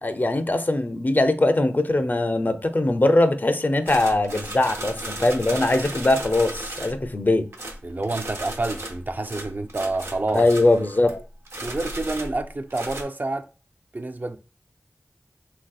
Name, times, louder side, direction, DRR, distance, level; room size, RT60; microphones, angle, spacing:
voice 1, 0.0-7.5 10.3-11.2, left 2 dB, 45° left, 0.4 m, -21 dB
sound 1, 3.9-7.1 7.5-11.2 11.5-13.0, right 1 dB, 75° right, 0.7 m, -35 dB
voice 2, 7.8-10.5 11.6-13.5 13.9-14.4, right 2 dB, 45° right, 0.3 m, -28 dB
3.1 x 2.7 x 2.3 m
wide cardioid pair, 40°, 5 cm